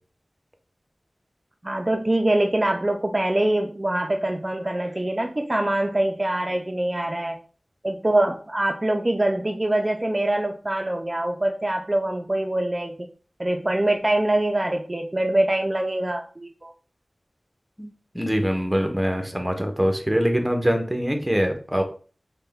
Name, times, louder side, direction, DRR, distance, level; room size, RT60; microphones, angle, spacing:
voice 1, 1.6-7.4 7.8-13.1 13.4-16.7, right 1 dB, 35° right, 3 dB, 0.3 m, -24 dB
voice 2, 17.8-21.8, equal, 10° right, 5 dB, 0.7 m, -24 dB
3.3 x 2.1 x 3.3 m, 0.40 s
wide cardioid pair, 40°, 0 cm